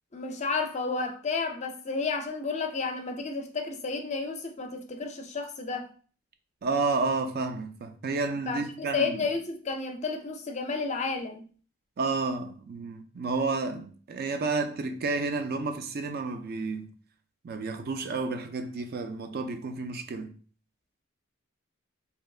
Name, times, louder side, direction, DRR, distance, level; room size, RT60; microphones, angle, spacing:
voice 1, 0.1-5.9 8.5-8.6 8.9-11.4, left 4 dB, 35° left, 0.5 m, -31 dB
voice 2, 6.6-9.3 12.0-16.9 17.4-20.4, right 3 dB, 50° right, 0.4 m, -31 dB
3.3 x 2.8 x 2.4 m
head